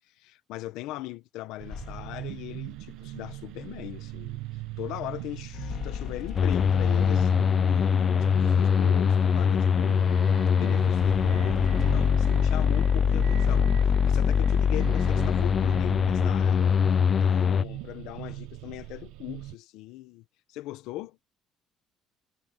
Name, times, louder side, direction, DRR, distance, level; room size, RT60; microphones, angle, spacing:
voice 1, 0.1-4.4 4.8-10.2 10.5-16.8 17.2-21.2, left 16 dB, 80° left, 1.4 m, -40 dB
sound 1, 1.6-19.6, right 16 dB, 85° right, 1.0 m, -40 dB
sound 2, 1.7-2.3 5.5-7.6 11.0-12.1, left 10 dB, 50° left, 2.1 m, -38 dB
sound 3, 6.4-17.6, left 7 dB, 30° left, 0.6 m, -23 dB
cardioid pair, 160°, 0 cm